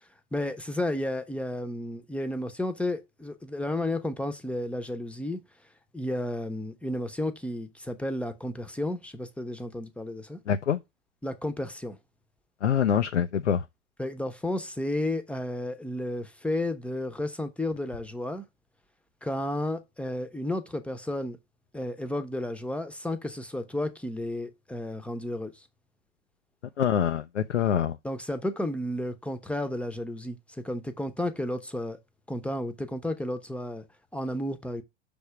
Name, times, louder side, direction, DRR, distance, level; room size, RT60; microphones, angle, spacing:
voice 1, 0.3-5.4 5.9-10.4 11.2-12.0 14.0-18.5 19.2-21.4 21.7-25.6 28.0-32.0 32.3-33.8 34.1-34.8, left 1 dB, 5° left, 0.8 m, -32 dB
voice 2, 10.5-10.8 12.6-13.6 26.8-28.0, left 8 dB, 90° left, 0.6 m, -25 dB
6.2 x 3.6 x 5.7 m
hypercardioid pair, 95°, 34 cm